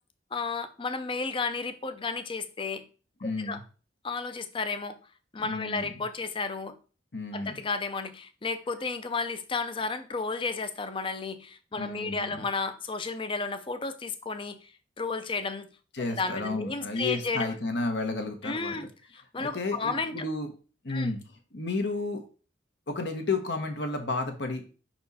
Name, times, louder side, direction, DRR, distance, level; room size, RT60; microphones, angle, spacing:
voice 1, 0.3-2.8 3.2-3.6 4.0-5.0 5.3-6.8 7.3-14.7 15.0-15.7 16.2-17.5 18.4-18.9 19.1-20.2 20.9-21.1, left 4 dB, 30° left, 11 dB, 0.5 m, -32 dB
voice 2, 3.2-3.6 5.4-5.9 7.1-7.6 11.7-12.5 15.9-18.9 19.4-20.5 20.8-21.2 21.5-22.2 22.9-24.6, left 3 dB, 65° left, 5 dB, 1.0 m, -32 dB
5.4 x 4.4 x 4.1 m, 0.37 s
head